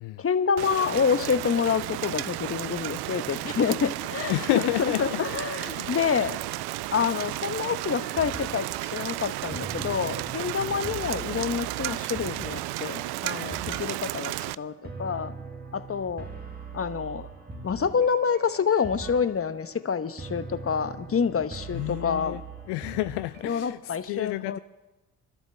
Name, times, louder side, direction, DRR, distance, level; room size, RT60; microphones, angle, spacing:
voice 1, 0.2-4.3 4.8-6.4 6.9-15.3 15.7-16.3 16.7-17.3 17.6-22.4 23.4-24.6, left 6 dB, 30° left, 12 dB, 1.1 m, -27 dB
Rain, 0.6-14.5, right 18 dB, 65° right, 0.5 m, -33 dB
voice 2, 4.3-5.2 5.6-6.0 10.6-10.8 21.7-22.4 22.7-24.6, left 19 dB, 70° left, 13 dB, 0.5 m, -30 dB
sound 1, 7.6-23.5, right 4 dB, 20° right, 2.7 m, -42 dB
28.0 x 12.5 x 3.5 m, 1.0 s
hypercardioid pair, 50°, 42 cm